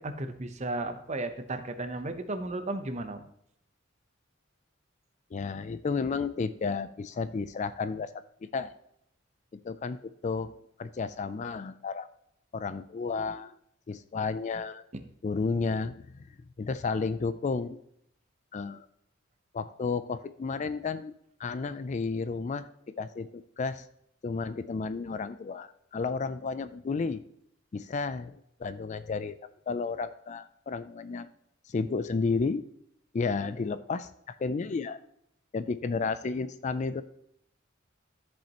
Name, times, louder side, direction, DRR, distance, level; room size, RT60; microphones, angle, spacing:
voice 1, 0.0-3.2, right 2 dB, 35° right, 8 dB, 0.7 m, -34 dB
voice 2, 5.3-8.1 8.5-8.7 9.5-12.1 12.5-13.5 13.9-14.9 15.2-16.1 16.6-17.8 18.5-18.9 19.5-21.1 21.4-22.7 23.0-23.9 24.2-27.2 27.7-29.4 29.7-31.3 31.7-32.6 33.1-35.0 35.5-37.0, left 4 dB, 35° left, 13 dB, 0.3 m, -32 dB
13.5 x 5.4 x 2.9 m, 0.73 s
head